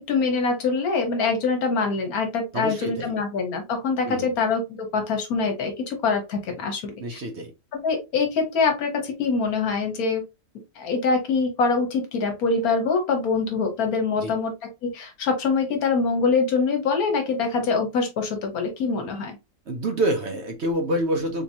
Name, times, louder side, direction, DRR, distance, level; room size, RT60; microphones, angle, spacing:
voice 1, 0.1-6.9 7.7-10.2 10.8-14.5 14.8-19.4, left 4 dB, 75° left, 1.4 m, -24 dB
voice 2, 2.5-3.2 4.0-4.3 7.0-7.5 14.2-14.3 19.7-21.4, right 1 dB, 55° right, 0.9 m, -27 dB
3.6 x 2.9 x 2.7 m
omnidirectional pair, 1.6 m